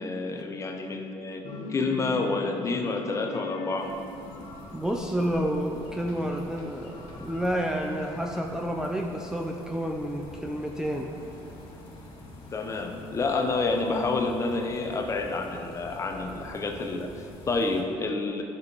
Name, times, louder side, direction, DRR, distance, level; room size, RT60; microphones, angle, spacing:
voice 1, 0.0-1.4 1.7-3.9 12.5-18.4, left 3 dB, 30° left, 4 dB, 0.7 m, -29 dB
sound 1, 1.4-8.4, left 3 dB, 85° left, 1.1 m, -42 dB
sound 2, 3.8-17.8, left 1 dB, 60° left, 2.0 m, -46 dB
voice 2, 4.7-11.1, equal, 5° right, 1 dB, 0.4 m, -30 dB
10.5 x 5.5 x 4.0 m, 2.7 s
cardioid pair, 135°, 11 cm